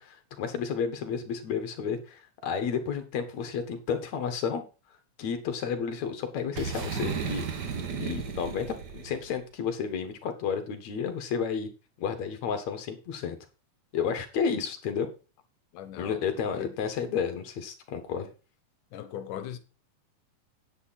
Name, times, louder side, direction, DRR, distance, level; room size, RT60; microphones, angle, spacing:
voice 1, 0.0-4.6 5.2-7.7 7.9-11.7 12.0-13.4 13.9-15.1 16.0-18.3, left 6 dB, 65° left, 2.8 m, -31 dB
Boom, 6.5-9.3, right 6 dB, 50° right, 1.2 m, -34 dB
voice 2, 15.7-16.2 16.5-16.7 18.2-18.3 18.9-19.6, left 10 dB, 85° left, 2.6 m, -39 dB
9.8 x 9.0 x 4.2 m
omnidirectional pair, 3.6 m